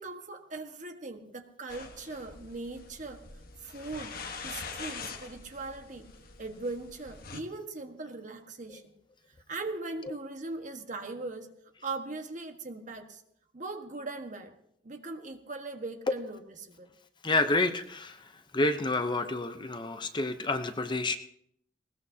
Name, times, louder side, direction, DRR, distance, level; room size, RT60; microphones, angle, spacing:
voice 1, 0.0-3.2 3.6-4.1 4.4-6.1 6.4-8.9 9.5-11.5 11.8-13.2 13.5-14.6 14.8-16.9, right 3 dB, 45° right, 5 dB, 1.5 m, -40 dB
sound 1, 1.7-7.4, left 5 dB, 55° left, 1.3 m, -44 dB
voice 2, 17.2-18.3 18.5-21.2, left 2 dB, 25° left, 8 dB, 0.7 m, -29 dB
20.0 x 19.0 x 2.8 m, 0.71 s
head